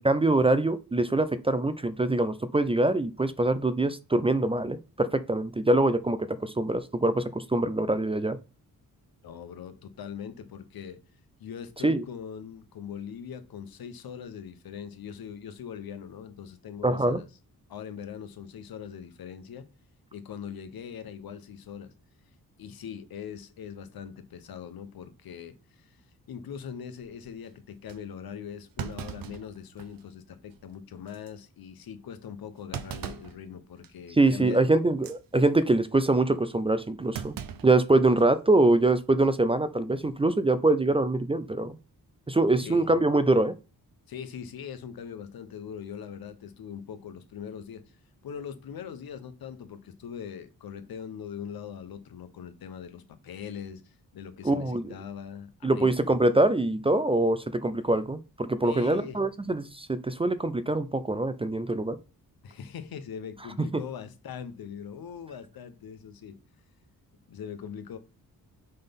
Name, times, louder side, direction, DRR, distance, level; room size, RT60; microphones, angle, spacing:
voice 1, 0.0-8.4 11.8-12.0 16.8-17.2 34.2-37.4 37.6-41.7 42.3-43.5 54.4-54.9 55.6-62.0, right 2 dB, 15° right, 0.4 m, -24 dB
voice 2, 9.2-11.0 11.4-17.3 17.7-19.7 20.1-21.9 22.6-26.0 26.3-34.6 42.6-42.9 44.1-47.8 48.2-55.9 58.6-59.2 62.4-66.4 67.3-68.0, left 8 dB, 75° left, 1.0 m, -41 dB
Thump thud, 27.0-27.3 27.9-28.0 28.8-30.1 30.5-30.6 31.1-31.3 32.7-33.4 33.8-34.1 34.9-35.2 37.1-38.3 38.7-38.8 39.9-40.2, right 8 dB, 70° right, 0.7 m, -39 dB
5.4 x 4.0 x 5.2 m
wide cardioid pair, 130°, 36 cm